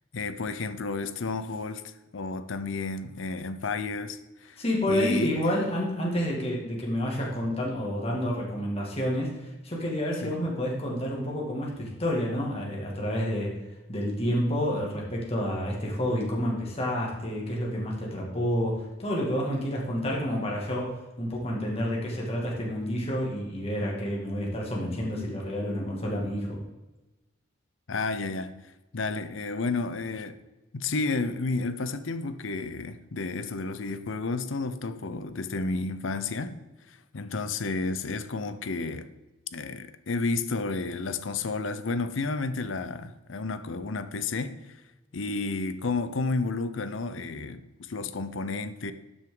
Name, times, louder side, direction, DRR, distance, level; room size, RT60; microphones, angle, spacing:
voice 1, 0.1-1.8 2.1-4.6 4.9-5.4 10.2-10.3 27.9-28.5 28.9-30.4 30.7-36.6 37.1-39.1 39.5-44.6 45.1-48.9, left 3 dB, 75° left, 0.7 m, -31 dB
voice 2, 4.6-13.5 13.9-26.6, equal, 30° left, 2.1 m, -29 dB
11.5 x 6.4 x 3.8 m
head